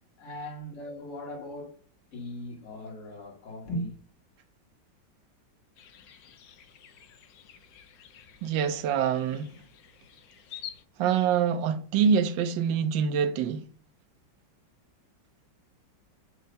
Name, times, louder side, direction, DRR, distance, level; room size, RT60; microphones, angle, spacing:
voice 1, 0.2-1.8 2.1-4.0, left 1 dB, 40° left, 1.8 m, -38 dB
sound 1, 5.8-10.8, left 10 dB, 65° left, 1.1 m, -49 dB
voice 2, 8.4-9.5 11.0-13.6, right 7 dB, 80° right, 1.4 m, -25 dB
6.6 x 2.7 x 5.2 m
omnidirectional pair, 2.1 m